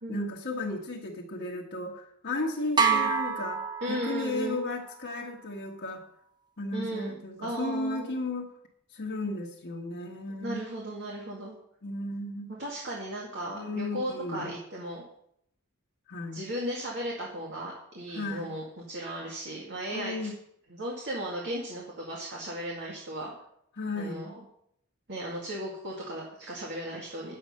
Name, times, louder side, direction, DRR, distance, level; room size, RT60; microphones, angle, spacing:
voice 1, 0.1-3.6 3.9-6.0 6.6-8.5 8.9-10.6 11.8-12.5 13.5-14.6 16.1-16.4 18.1-18.5 19.9-20.3 23.8-24.3, left 2 dB, 55° left, -2 dB, 1.3 m, -34 dB
sound 1, 2.8-4.6, right 6 dB, 20° right, 0.9 m, -27 dB
voice 2, 2.8-3.1 3.8-4.6 6.7-8.1 10.3-11.5 12.6-15.0 16.3-20.3 20.7-23.3 24.0-24.3 25.1-27.4, right 1 dB, 55° right, -3 dB, 2.0 m, -36 dB
9.8 x 7.8 x 5.4 m, 0.72 s
head